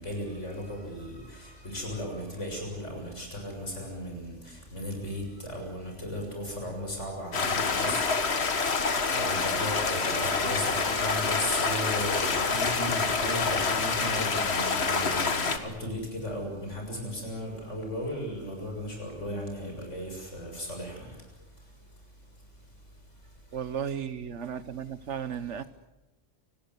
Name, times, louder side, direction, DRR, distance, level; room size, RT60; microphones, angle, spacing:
voice 1, 0.0-22.1 22.7-22.8 23.2-23.6, equal, 75° left, 2 dB, 7.2 m, -36 dB
Stream, 7.3-15.6, left 4 dB, 60° left, 1.8 m, -27 dB
voice 2, 23.5-25.6, right 8 dB, 75° right, 14 dB, 1.3 m, -35 dB
29.0 x 18.5 x 8.2 m, 1.0 s
omnidirectional pair, 1.2 m